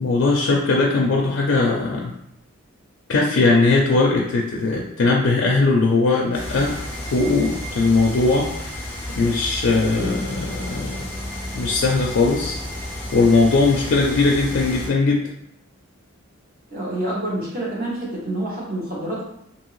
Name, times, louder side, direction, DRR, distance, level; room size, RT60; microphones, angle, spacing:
voice 1, 0.0-2.1 3.1-6.8 7.1-8.5 9.2-11.0 11.5-12.6 13.1-15.2, left 3 dB, 65° left, -2 dB, 0.4 m, -19 dB
sound 1, 6.3-14.9, left 1 dB, 10° left, 0.6 m, -32 dB
sound 2, 10.0-15.0, equal, 65° right, 0.5 m, -39 dB
voice 2, 16.7-19.2, right 1 dB, 45° right, -5 dB, 1.0 m, -27 dB
2.7 x 2.7 x 3.0 m, 0.77 s
head